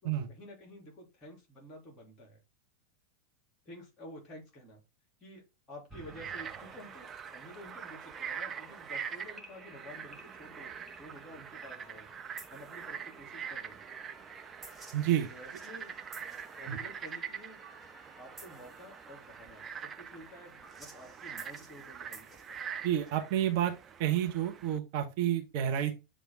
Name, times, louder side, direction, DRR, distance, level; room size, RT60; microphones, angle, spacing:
voice 1, 0.0-2.4 3.6-4.8 5.2-12.1 12.5-13.8 15.3-16.0 16.5-17.6 18.2-22.6, left 1 dB, 25° left, 0 dB, 3.1 m, -51 dB
sound 1, 5.9-23.6, right 2 dB, 10° right, 1.3 m, -55 dB
Frog, 6.0-24.8, right 7 dB, 25° right, 0.5 m, -44 dB
voice 2, 14.9-15.3 16.7-16.8 22.8-23.7 24.0-26.0, right 11 dB, 45° right, 4 dB, 1.0 m, -29 dB
7.4 x 3.5 x 3.8 m, 0.26 s
figure-of-eight pair, 90°, 0 cm